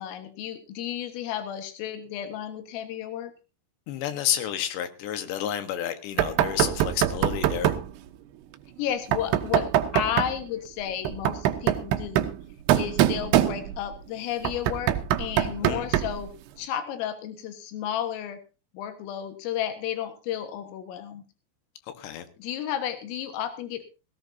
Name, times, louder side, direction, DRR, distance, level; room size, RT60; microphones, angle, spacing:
voice 1, 0.0-3.3 8.8-9.7 9.9-12.3 12.7-16.3 16.6-18.4 18.7-21.2 22.4-23.8, left 10 dB, 90° left, 8 dB, 4.1 m, -32 dB
voice 2, 3.9-7.7 15.6-15.9 21.9-22.3, left 10 dB, 70° left, 9 dB, 3.3 m, -30 dB
Knock, 6.2-7.9 9.1-10.4 11.0-13.9 14.4-16.2, right 12 dB, 75° right, 2.5 m, -24 dB
17.5 x 17.0 x 2.7 m, 0.32 s
omnidirectional pair, 5.7 m